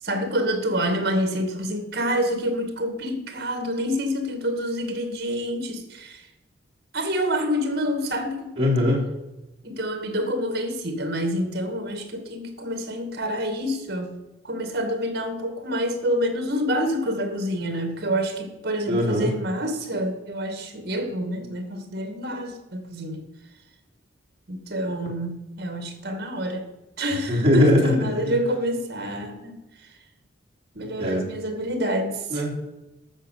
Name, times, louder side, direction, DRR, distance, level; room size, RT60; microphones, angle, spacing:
voice 1, 0.0-6.3 6.9-8.6 9.6-14.2 14.4-23.3 24.5-26.7 27.0-29.9 30.7-32.5, equal, 55° right, 7 dB, 2.4 m, -27 dB
voice 2, 8.6-9.0 18.9-19.3 27.3-27.9 28.3-28.4 31.0-31.2 32.3-32.6, left 1 dB, 30° right, -4 dB, 3.7 m, -20 dB
13.5 x 6.6 x 8.6 m, 1.0 s
head